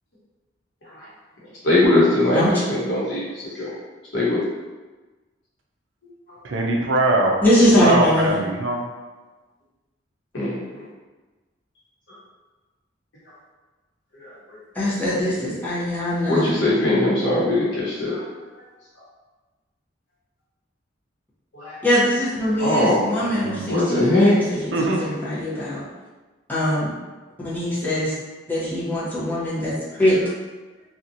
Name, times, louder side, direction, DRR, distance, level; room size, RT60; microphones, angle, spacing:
voice 1, 1.6-3.7 4.1-4.4 10.3-10.8 14.1-14.3 16.3-18.2 21.5-21.8 22.6-23.1 23.7-24.3, left 1 dB, 65° left, -8 dB, 1.1 m, -20 dB
voice 2, 6.4-7.4 7.8-8.8 23.2-23.7 24.7-25.0, right 2 dB, 70° right, 0 dB, 0.4 m, -22 dB
voice 3, 7.4-8.4 14.7-16.6 21.8-25.8 26.5-26.9 27.4-28.1 28.5-29.7 30.0-30.2, equal, 10° left, -10 dB, 0.8 m, -22 dB
2.8 x 2.3 x 2.6 m, 1.2 s
head